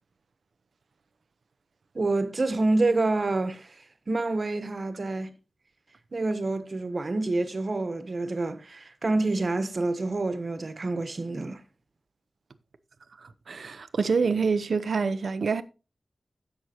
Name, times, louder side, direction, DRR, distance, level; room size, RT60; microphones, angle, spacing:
voice 1, 1.9-3.7 4.1-5.3 6.1-11.6, right 2 dB, 50° right, 1.3 m, -27 dB
voice 2, 13.2-15.6, right 5 dB, 80° right, 0.8 m, -26 dB
16.5 x 6.3 x 3.0 m
wide cardioid pair, 105°, 0 cm